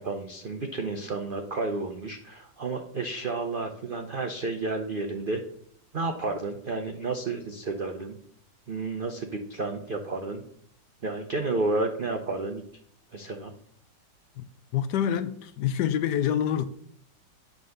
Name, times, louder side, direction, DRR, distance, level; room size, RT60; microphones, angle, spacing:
voice 1, 0.0-5.4 5.9-8.2 8.7-10.4 11.0-12.6 13.1-13.5, right 3 dB, 75° right, 5 dB, 0.5 m, -31 dB
voice 2, 14.7-16.7, left 9 dB, 70° left, 11 dB, 1.1 m, -26 dB
9.4 x 3.8 x 6.4 m, 0.64 s
omnidirectional pair, 2.0 m